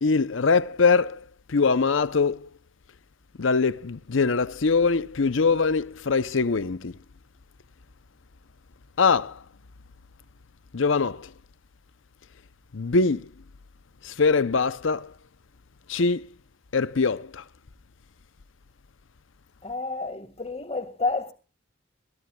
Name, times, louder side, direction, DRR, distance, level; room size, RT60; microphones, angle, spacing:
voice 1, 0.0-1.2 1.5-2.5 3.4-6.9 9.0-9.4 10.7-11.3 12.7-13.3 14.0-15.1 15.9-16.2 16.7-17.4, left 4 dB, 75° left, 0.7 m, -23 dB
voice 2, 19.6-21.3, left 3 dB, 30° left, 1.9 m, -30 dB
23.5 x 16.5 x 2.3 m
head